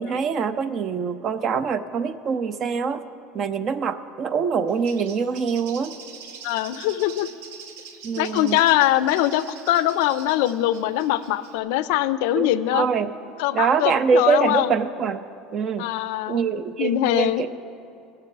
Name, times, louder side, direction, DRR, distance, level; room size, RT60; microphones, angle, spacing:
voice 1, 0.0-3.0 3.3-5.9 8.0-8.6 12.4-13.1 13.5-15.2 15.5-15.9 16.3-17.5, right 6 dB, 30° right, 12 dB, 0.4 m, -24 dB
Bird, 4.7-11.6, right 6 dB, 90° right, 0.8 m, -44 dB
voice 2, 6.4-7.3 8.2-12.9 13.4-14.7 15.8-16.4 16.8-17.4, left 13 dB, 75° left, 14 dB, 0.4 m, -22 dB
18.5 x 6.7 x 4.6 m, 2.6 s
cardioid pair, 170°, 0 cm